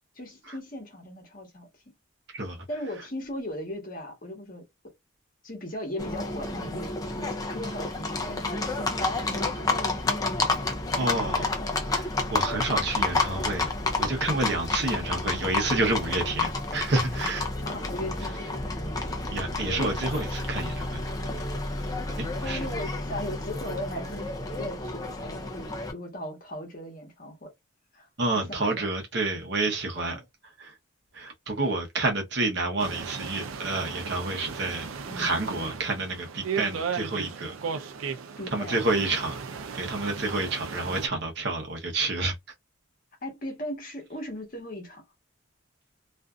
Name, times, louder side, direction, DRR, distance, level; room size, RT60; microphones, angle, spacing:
voice 1, 0.1-1.7 2.7-4.6 5.4-9.8 11.4-11.8 17.6-18.7 19.7-20.0 22.4-24.3 24.6-27.5 27.9-28.1 28.3-28.9 29.9-30.2 35.1-35.3 38.4-38.8 39.1-39.3 43.2-45.0, left 1 dB, 45° left, 1.1 m, -38 dB
Livestock farm animals working animals, 6.0-25.9, left 3 dB, 20° left, 0.4 m, -30 dB
voice 2, 11.0-11.4 11.9-13.7 14.0-17.5 19.3-21.0 22.2-22.6 28.2-30.2 30.6-30.7 31.1-34.9 35.2-37.5 38.5-39.4 39.7-42.3, right 2 dB, 55° right, 0.8 m, -29 dB
sound 1, 32.8-41.1, right 6 dB, 90° right, 0.5 m, -36 dB
2.5 x 2.4 x 2.3 m
head